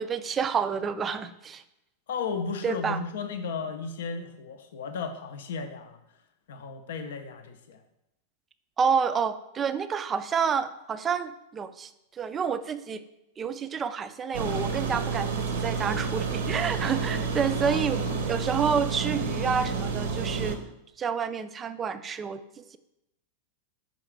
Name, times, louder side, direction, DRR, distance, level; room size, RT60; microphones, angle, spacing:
voice 1, 0.0-1.6 2.6-3.0 8.8-13.0 13.4-18.0 18.3-20.6 21.0-22.8, right 6 dB, 20° right, 12 dB, 0.3 m, -29 dB
voice 2, 2.1-6.0 6.5-7.8 17.6-18.3, left 5 dB, 60° left, 7 dB, 0.5 m, -35 dB
sound 1, 14.3-20.5, right 5 dB, 60° right, 0.7 m, -29 dB
5.5 x 3.8 x 4.5 m, 0.87 s
figure-of-eight pair, 90°, 0 cm